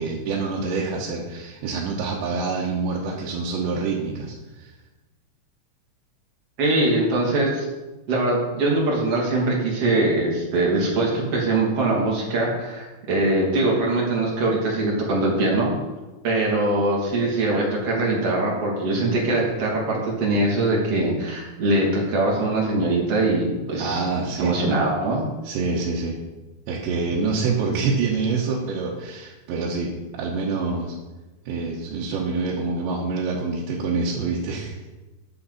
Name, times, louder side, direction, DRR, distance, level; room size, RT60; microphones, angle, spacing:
voice 1, 0.0-4.7 23.8-24.6 25.4-26.2 26.7-31.0 31.5-34.9, right 4 dB, 80° right, -4 dB, 3.5 m, -26 dB
voice 2, 6.6-7.7 8.1-15.7 16.2-24.0 24.4-25.2, right 2 dB, 40° right, -3 dB, 3.3 m, -22 dB
13.0 x 9.7 x 4.2 m, 1.1 s
omnidirectional pair, 5.2 m